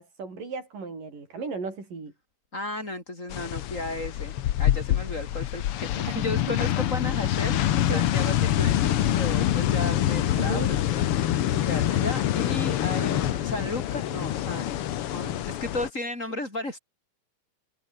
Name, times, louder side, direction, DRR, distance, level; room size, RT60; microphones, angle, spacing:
voice 1, 0.0-2.1 6.1-6.2 7.9-8.1 10.3-10.7, right 4 dB, 80° right, 8.6 m, -35 dB
voice 2, 2.5-7.6 7.9-14.8 15.1-16.8, left 2 dB, 20° left, 6.0 m, -34 dB
sound 1, 3.3-15.9, left 12 dB, 70° left, 1.4 m, -26 dB
omnidirectional pair, 3.8 m